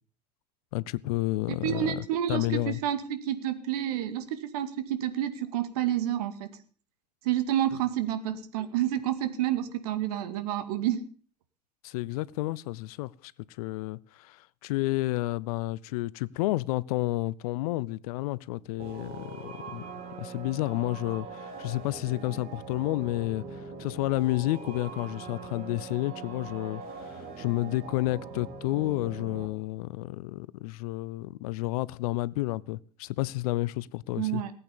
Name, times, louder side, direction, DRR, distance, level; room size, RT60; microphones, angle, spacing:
voice 1, 0.7-2.8 11.8-13.3 13.6-19.8 20.2-23.4 23.8-34.4, left 19 dB, 60° left, 0.7 m, -31 dB
voice 2, 1.5-6.5 7.2-11.0 34.2-34.5, right 11 dB, 65° right, 2.2 m, -29 dB
sound 1, 18.8-29.5, right 4 dB, 45° right, 3.7 m, -42 dB
19.0 x 8.7 x 7.1 m
figure-of-eight pair, 75°, 21 cm